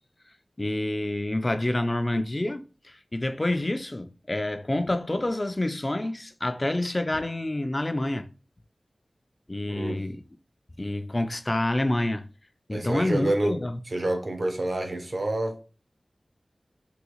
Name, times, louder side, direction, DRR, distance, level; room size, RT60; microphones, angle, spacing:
voice 1, 0.6-8.3 9.5-10.2 10.8-12.3 12.7-13.8, left 1 dB, 30° left, 0.3 m, -28 dB
voice 2, 9.7-10.0 12.7-13.6 13.9-15.6, right 1 dB, 55° right, 0.6 m, -28 dB
3.6 x 2.3 x 2.9 m
wide cardioid pair, 70°, 0 cm